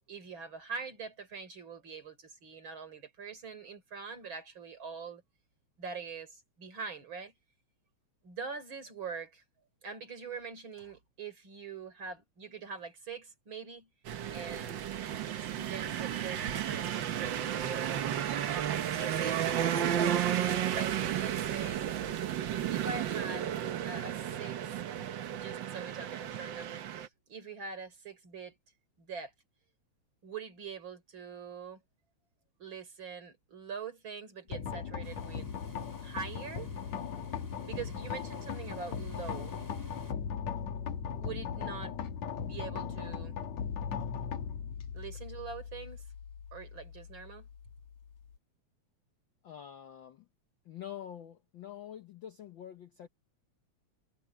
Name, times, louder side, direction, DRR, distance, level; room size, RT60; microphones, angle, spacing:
voice 1, 0.1-5.2 5.8-7.3 8.2-9.4 9.8-13.9 14.3-14.8 15.5-17.8 19.0-20.4 20.7-21.9 22.7-23.5 23.8-24.8 25.3-28.6 29.0-29.3 30.2-31.8 32.6-35.5 36.0-36.7 37.6-39.5 41.2-42.0 42.4-43.4 44.9-46.0 46.5-47.5, right 5 dB, 40° right, 4.5 m, -43 dB
sound 1, 14.0-27.1, right 10 dB, 75° right, 1.0 m, -33 dB
sound 2, 34.5-48.4, left 7 dB, 65° left, 2.8 m, -39 dB
sound 3, 35.0-40.1, equal, 5° left, 6.8 m, -54 dB
voice 2, 49.4-50.3 50.6-53.1, left 10 dB, 80° left, 1.0 m, -46 dB
omnidirectional pair, 3.4 m